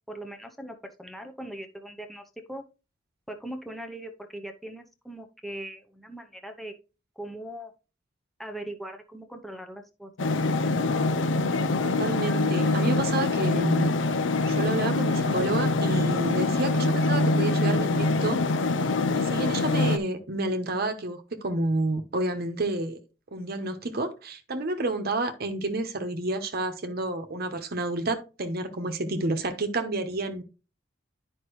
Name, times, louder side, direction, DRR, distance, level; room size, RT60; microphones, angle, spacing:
voice 1, 0.1-2.6 3.3-6.7 7.2-7.7 8.4-10.3, right 1 dB, ahead, 0.7 m, -40 dB
sound 1, 10.2-20.0, left 2 dB, 75° left, 0.6 m, -24 dB
voice 2, 11.8-13.9 14.5-18.4 19.1-23.0 23.3-30.4, right 2 dB, 55° right, 1.0 m, -30 dB
9.9 x 5.3 x 3.1 m
head